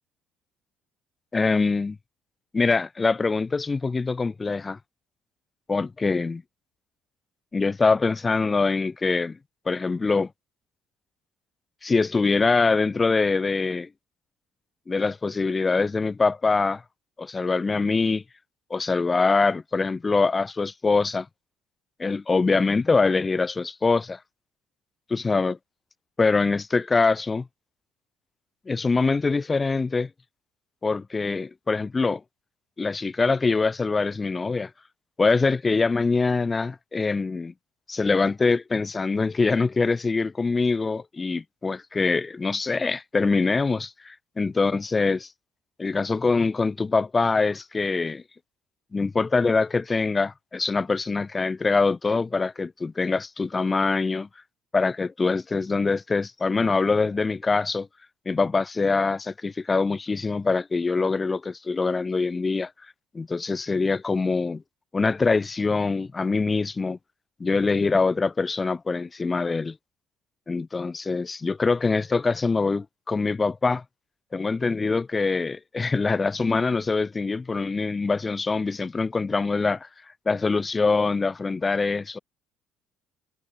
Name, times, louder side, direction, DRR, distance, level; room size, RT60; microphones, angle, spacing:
voice 1, 1.3-2.0 2.5-4.8 5.7-6.4 7.5-9.4 9.7-10.3 11.8-13.9 14.9-16.8 17.2-18.2 18.7-21.3 22.0-24.2 25.1-25.5 26.2-27.5 28.7-30.1 30.8-32.2 32.8-34.7 35.2-37.5 37.9-45.3 45.8-48.2 48.9-54.3 54.7-57.9 58.2-62.7 63.1-64.6 64.9-67.0 67.4-69.8 70.5-73.8 74.3-79.9 80.3-82.2, left 4 dB, 25° left, 1.2 m, -24 dB
figure-of-eight pair, 50°, 0 cm